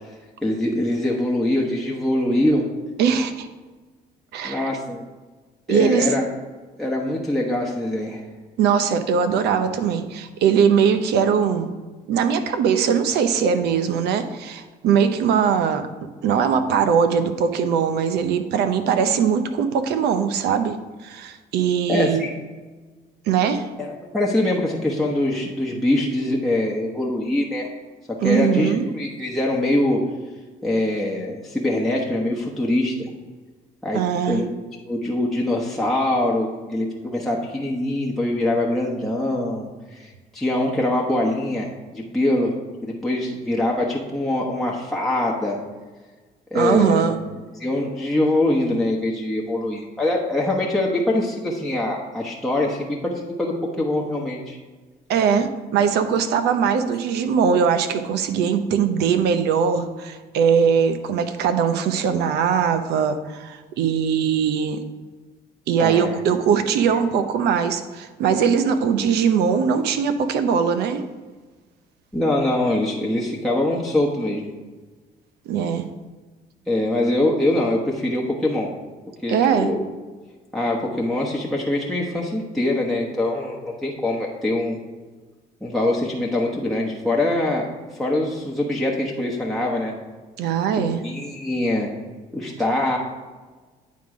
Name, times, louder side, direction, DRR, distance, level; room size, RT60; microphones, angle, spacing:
voice 1, 0.4-2.6 4.4-5.0 5.7-6.2 6.8-8.2 21.9-22.3 23.8-27.7 28.1-30.0 30.6-33.1 33.8-34.5 34.9-42.5 42.8-45.6 46.5-47.1 47.5-54.6 65.8-66.4 72.1-74.5 76.7-78.7 79.2-79.8 80.5-84.8 85.6-87.7 87.9-89.9 90.7-91.9 92.3-93.0, left 1 dB, ahead, -3 dB, 1.0 m, -23 dB
voice 2, 3.0-3.5 4.3-4.7 5.7-6.1 8.6-11.7 12.1-15.9 16.2-22.3 23.3-23.7 28.2-28.9 33.9-34.4 46.5-47.2 55.1-64.8 65.7-71.0 75.5-75.9 79.3-79.7 90.4-91.0, right 7 dB, 75° right, 9 dB, 0.7 m, -21 dB
9.3 x 3.8 x 4.8 m, 1.3 s
cardioid pair, 110°, 17 cm